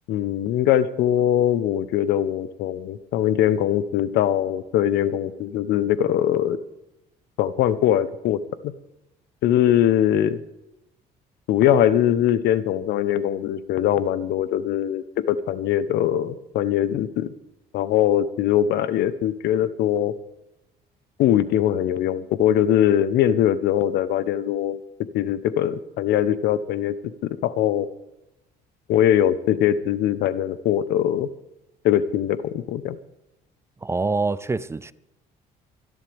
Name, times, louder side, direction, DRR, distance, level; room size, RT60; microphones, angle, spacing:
voice 1, 0.1-6.6 7.4-8.4 9.4-10.4 11.5-17.3 17.7-20.1 21.2-24.8 25.1-26.9 27.4-27.9 28.9-31.3 31.8-33.0, left 11 dB, 80° left, 1.0 m, -21 dB
voice 2, 33.8-34.9, right 3 dB, 15° right, 0.5 m, -25 dB
25.5 x 11.0 x 3.5 m
cardioid pair, 110°, 17 cm